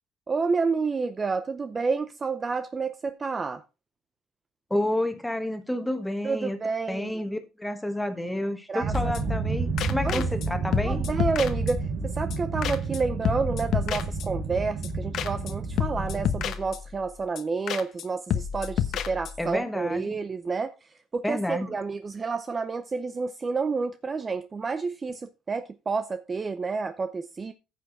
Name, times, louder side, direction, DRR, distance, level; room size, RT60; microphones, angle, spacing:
voice 1, 0.3-3.6 6.2-7.1 8.7-9.2 10.0-10.2 10.8-27.5, right 4 dB, 20° right, 0.6 m, -30 dB
voice 2, 4.7-6.6 6.9-11.0 19.4-20.0 21.2-21.7, left 1 dB, 5° left, 1.5 m, -30 dB
sound 1, 8.8-16.5, right 3 dB, 75° right, 4.5 m, -30 dB
sound 2, 8.9-9.5 9.8-10.5 10.7-12.0 12.3-12.4 12.6-13.0 13.2-14.6 14.8-14.9 15.1-15.5 15.8-17.1 17.4-17.5 17.7-18.0 18.3-19.5, left 9 dB, 55° left, 1.0 m, -30 dB
14.5 x 6.0 x 4.1 m
cardioid pair, 145°, 0 cm